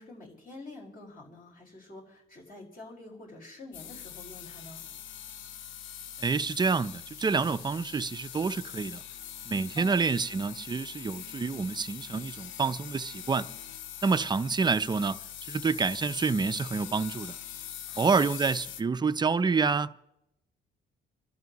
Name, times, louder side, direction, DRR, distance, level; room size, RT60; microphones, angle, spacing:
voice 1, 0.0-4.8 9.7-10.0 17.8-18.2, left 2 dB, 45° left, 5.0 m, -47 dB
sound 1, 3.7-18.8, left 10 dB, 80° left, 0.7 m, -43 dB
voice 2, 6.2-9.0 9.5-13.5 14.0-17.4 18.0-20.0, right 4 dB, 20° right, 0.5 m, -28 dB
29.0 x 12.5 x 3.0 m
cardioid pair, 90°, 20 cm